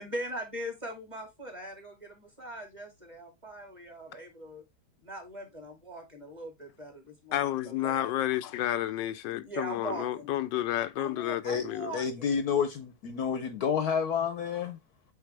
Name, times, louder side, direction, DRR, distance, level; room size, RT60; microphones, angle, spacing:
voice 1, 0.0-4.6 5.0-8.1 9.4-10.3 11.0-12.3, right 1 dB, 15° right, 2.2 m, -41 dB
voice 2, 7.3-12.0, left 13 dB, 90° left, 1.3 m, -31 dB
voice 3, 11.9-14.8, left 7 dB, 65° left, 1.1 m, -29 dB
8.3 x 4.0 x 3.3 m
omnidirectional pair, 1.9 m